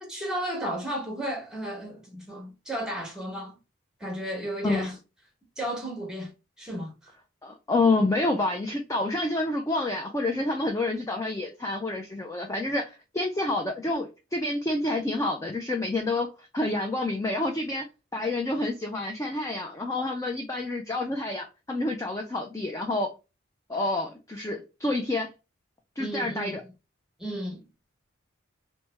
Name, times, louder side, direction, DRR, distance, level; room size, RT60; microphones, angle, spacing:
voice 1, 0.0-3.6 4.0-5.0 5.6-6.3 6.6-7.1 26.0-26.5 27.2-27.6, right 1 dB, 5° right, 0.9 m, -33 dB
voice 2, 7.4-17.9 18.1-23.1 23.7-25.3 26.0-26.6, left 2 dB, 15° left, 0.3 m, -28 dB
3.2 x 2.0 x 3.1 m
head